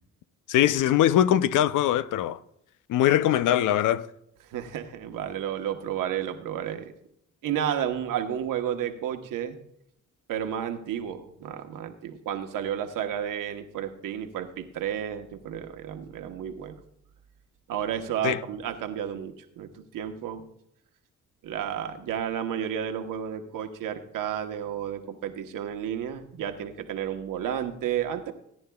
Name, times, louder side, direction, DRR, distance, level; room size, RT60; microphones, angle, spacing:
voice 1, 0.5-2.4 2.9-4.1 18.2-18.4, left 11 dB, 75° left, 0.6 m, -22 dB
voice 2, 4.5-6.9 7.4-9.6 10.3-16.8 17.7-20.4 21.4-28.3, right 9 dB, 80° right, 1.1 m, -32 dB
18.0 x 9.8 x 2.3 m
cardioid pair, 75°, 32 cm